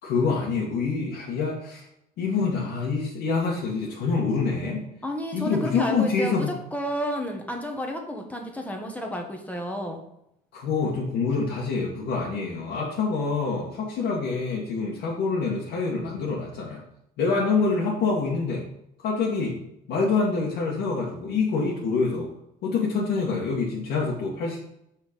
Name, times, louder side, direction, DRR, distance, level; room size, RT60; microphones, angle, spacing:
voice 1, 0.0-1.9 2.2-4.9 5.3-6.6 10.5-16.8 17.2-18.6 19.0-19.6 19.9-22.3 22.6-24.6, left 4 dB, 75° left, -4 dB, 1.7 m, -26 dB
voice 2, 5.0-10.0, equal, 10° left, 2 dB, 1.4 m, -31 dB
6.1 x 5.6 x 5.2 m, 0.78 s
cardioid pair, 110°, 17 cm